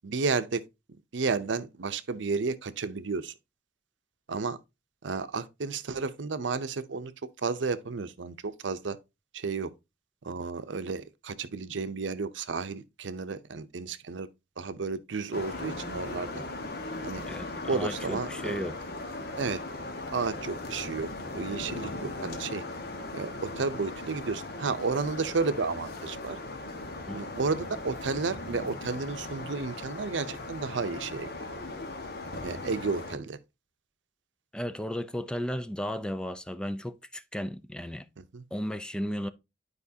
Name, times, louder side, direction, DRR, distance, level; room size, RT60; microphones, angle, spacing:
voice 1, 0.0-0.6 1.1-3.3 4.3-4.6 5.0-7.1 7.4-9.0 9.3-9.7 10.2-14.3 14.6-16.4 17.0-17.2 17.7-18.6 19.4-19.6 20.1-21.1 21.3-22.6 23.1-26.4 27.1-31.3 32.3-33.4 38.2-38.4, right 4 dB, 80° right, 0.6 m, -32 dB
sound 1, 15.3-33.2, left 2 dB, 60° left, 1.3 m, -38 dB
voice 2, 17.3-18.8 27.1-27.2 34.5-38.1 38.5-39.3, equal, 5° left, 0.4 m, -34 dB
11.0 x 4.9 x 2.7 m
head